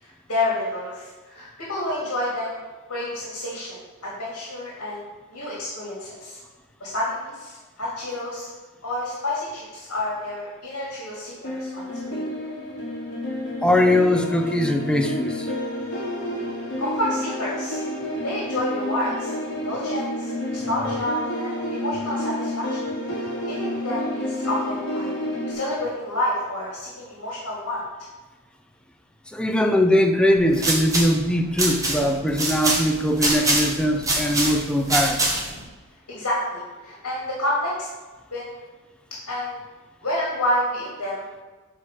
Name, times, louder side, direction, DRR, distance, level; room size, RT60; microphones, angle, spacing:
voice 1, 0.0-2.6 2.9-6.4 6.8-8.5 8.8-12.2 16.8-17.8 18.2-19.3 19.6-22.8 23.2-27.8 36.1-37.9 38.3-38.6 39.3-39.6 40.0-41.2, left 1 dB, 75° left, -5 dB, 1.9 m, -29 dB
sound 1, 11.4-25.5, left 1 dB, 55° left, 2.2 m, -29 dB
voice 2, 13.6-15.5 29.3-35.2, left 1 dB, 5° left, 4 dB, 0.4 m, -21 dB
sound 2, 30.4-35.6, right 2 dB, 15° right, 1.1 m, -25 dB
6.4 x 4.2 x 4.8 m, 1.3 s
head